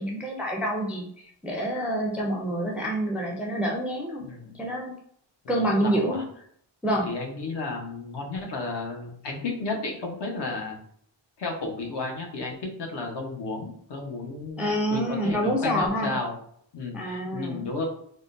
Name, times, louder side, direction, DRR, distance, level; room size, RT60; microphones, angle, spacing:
voice 1, 0.0-4.3 4.6-4.9 5.5-6.3 6.8-7.1 14.6-16.2 16.9-17.7, equal, 5° right, -1 dB, 0.3 m, -27 dB
voice 2, 4.2-4.6 5.4-5.5 5.8-6.2 7.1-10.8 11.4-16.3 16.7-17.8, left 3 dB, 60° left, 1 dB, 0.8 m, -33 dB
3.6 x 2.1 x 2.4 m, 0.65 s
wide cardioid pair, 145°, 47 cm